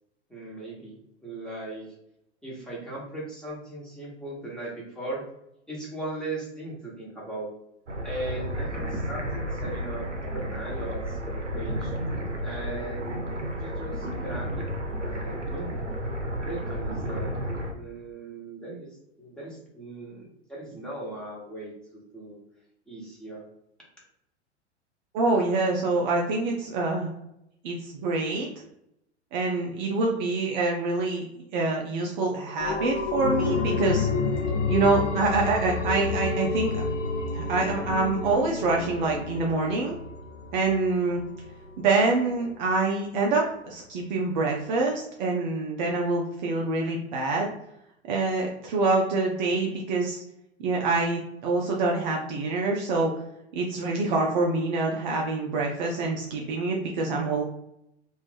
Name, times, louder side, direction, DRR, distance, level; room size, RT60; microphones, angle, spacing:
voice 1, 0.3-1.9 2.4-5.2 5.7-7.5 8.0-11.9 12.4-14.7 15.0-15.8 16.4-17.4 17.7-18.9 19.2-22.4 22.9-23.5, right 2 dB, ahead, -6 dB, 1.3 m, -38 dB
sound 1, 7.9-17.7, equal, 85° right, 0.7 m, -32 dB
voice 2, 25.1-27.1 27.6-28.5 29.3-31.2 31.5-34.1 34.7-36.8 37.3-40.0 40.5-41.2 41.8-47.5 48.1-50.2 50.6-53.1 53.5-57.4, right 3 dB, 40° right, -1 dB, 0.6 m, -26 dB
sound 2, 32.6-41.9 42.3-42.4, left 4 dB, 85° left, 0.5 m, -30 dB
3.0 x 2.6 x 3.3 m, 0.81 s
figure-of-eight pair, 95°, 35 cm